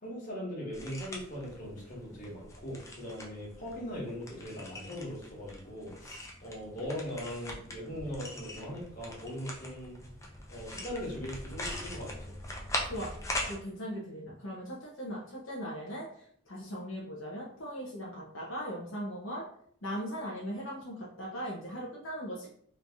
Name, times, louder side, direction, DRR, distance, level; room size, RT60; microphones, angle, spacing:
voice 1, 0.0-10.0 10.5-12.3, equal, 40° left, -5 dB, 1.5 m, -40 dB
sound 1, 0.7-13.6, left 1 dB, 15° left, 0.5 m, -42 dB
voice 2, 13.5-16.0 16.5-19.4 19.8-22.5, equal, 75° left, -4 dB, 0.9 m, -39 dB
3.3 x 2.7 x 3.5 m, 0.63 s
head